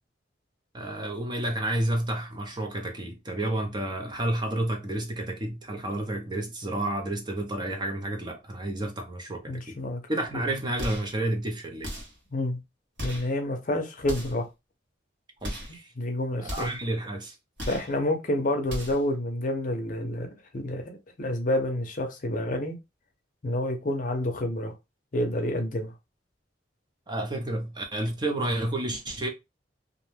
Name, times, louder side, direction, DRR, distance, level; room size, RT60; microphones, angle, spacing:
voice 1, 0.7-9.8 10.1-11.9 15.4-15.9 16.4-17.3 27.1-29.3, right 1 dB, 25° right, 0.5 m, -30 dB
voice 2, 9.5-10.0 12.3-12.6 13.0-14.5 16.0-16.7 17.7-20.3 20.5-20.9 21.2-22.8 23.4-24.7 25.1-25.9, left 1 dB, 45° left, 0.6 m, -28 dB
sound 1, 10.8-11.2 11.8-12.2 13.0-13.3 14.0-14.5 15.4-15.8 16.4-16.9 17.6-17.9 18.6-19.1, equal, 75° right, 1.1 m, -36 dB
2.5 x 2.2 x 3.1 m
head